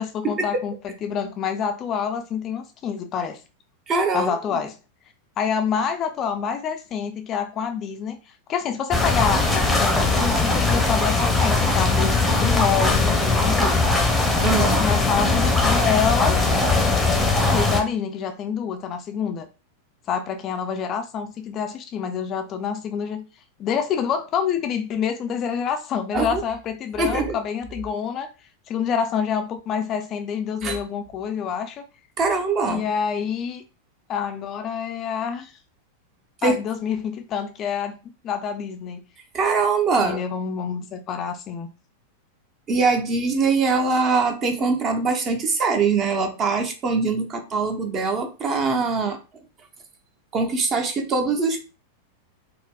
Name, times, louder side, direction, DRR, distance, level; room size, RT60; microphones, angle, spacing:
voice 1, 0.0-3.4 4.1-4.8 5.4-13.7 14.5-16.4 17.5-19.5 20.1-23.2 23.6-28.3 28.7-31.8 32.7-33.6 34.1-35.5 36.4-38.0 38.2-39.0 40.0-41.7, left 7 dB, 30° left, 0.3 m, -27 dB
voice 2, 3.9-4.3 14.4-14.8 26.1-26.4 27.0-27.4 30.6-30.8 32.2-32.8 36.4-36.6 39.3-40.2 42.7-49.2 50.3-51.6, right 4 dB, 30° right, 0.7 m, -22 dB
sound 1, 8.9-17.8, left 3 dB, 5° left, 0.7 m, -20 dB
4.2 x 2.0 x 2.3 m
figure-of-eight pair, 90°, 0 cm